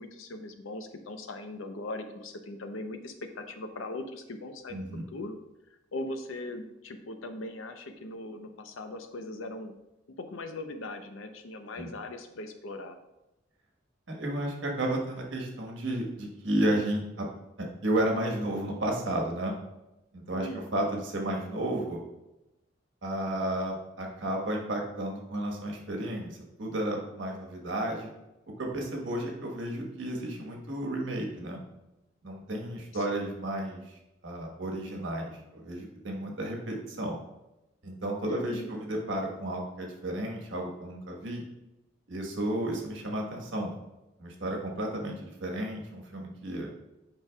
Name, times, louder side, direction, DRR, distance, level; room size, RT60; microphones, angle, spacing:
voice 1, 0.0-4.8 5.1-5.4 5.9-9.7 10.2-13.0 20.3-20.7 32.9-33.3 38.2-38.7, left 2 dB, 85° left, 7 dB, 0.7 m, -40 dB
voice 2, 4.7-5.0 11.8-11.9 14.1-17.3 17.8-19.5 20.1-22.0 23.0-26.3 26.6-28.1 28.6-31.6 32.2-33.9 34.2-37.2 37.8-41.4 42.1-43.7 44.2-46.7, right 1 dB, 70° right, 1 dB, 1.3 m, -32 dB
8.1 x 5.2 x 2.3 m, 0.96 s
head